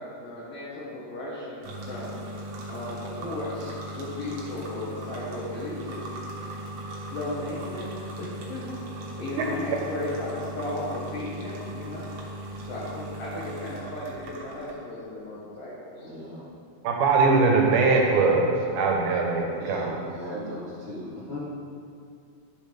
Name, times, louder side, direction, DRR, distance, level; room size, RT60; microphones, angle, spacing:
voice 1, 0.0-2.4 2.7-6.0 7.1-7.9 8.2-8.8 9.2-12.1 12.7-16.1, left 2 dB, 55° left, -8 dB, 2.1 m, -35 dB
sound 1, 1.6-14.7, right 1 dB, 65° right, 2.3 m, -38 dB
voice 2, 16.0-16.4 19.6-21.4, left 1 dB, 75° left, -9 dB, 0.5 m, -38 dB
voice 3, 16.8-18.5 18.7-19.9 20.3-20.4, right 4 dB, 85° right, 0 dB, 2.5 m, -21 dB
12.0 x 6.2 x 3.4 m, 2.4 s
omnidirectional pair, 3.6 m